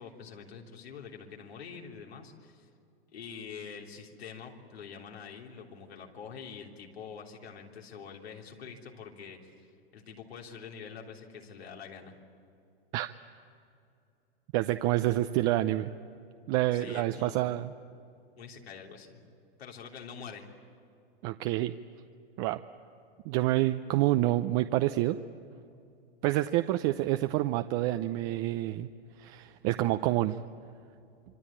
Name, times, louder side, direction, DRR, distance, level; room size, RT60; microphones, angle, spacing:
voice 1, 0.0-2.7 3.1-9.7 9.9-12.1 16.7-17.6 18.4-19.2 19.6-20.5, left 6 dB, 90° left, 0 dB, 3.5 m, -45 dB
voice 2, 14.5-15.9 16.5-17.7 21.2-21.7 22.4-22.6 23.2-25.2 26.2-28.9 29.2-30.4, right 16 dB, 40° right, 9 dB, 0.7 m, -28 dB
26.0 x 24.0 x 8.8 m, 2.5 s
hypercardioid pair, 120°, 30 cm